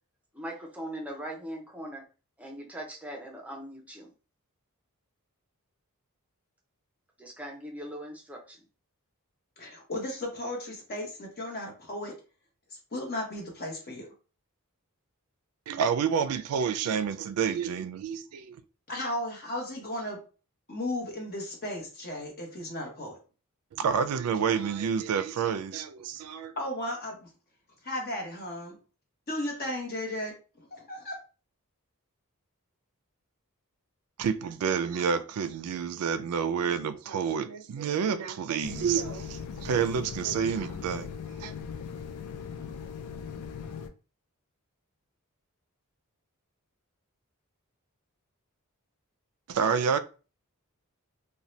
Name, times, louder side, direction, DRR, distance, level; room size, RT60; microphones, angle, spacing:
voice 1, 0.3-2.0 2.4-4.1 7.2-8.6, right 1 dB, 5° right, 0.5 m, -40 dB
voice 2, 9.6-12.1 12.9-14.1 18.9-20.2 20.7-23.2 26.6-27.3 27.8-28.8 29.3-31.2, left 1 dB, 45° left, 1.0 m, -35 dB
voice 3, 15.7-18.6 23.7-26.5 34.2-41.1 41.4-41.5 49.5-50.0, right 7 dB, 80° right, 0.3 m, -29 dB
sound 1, 38.6-43.9, left 6 dB, 85° left, 0.4 m, -39 dB
2.7 x 2.2 x 3.1 m
head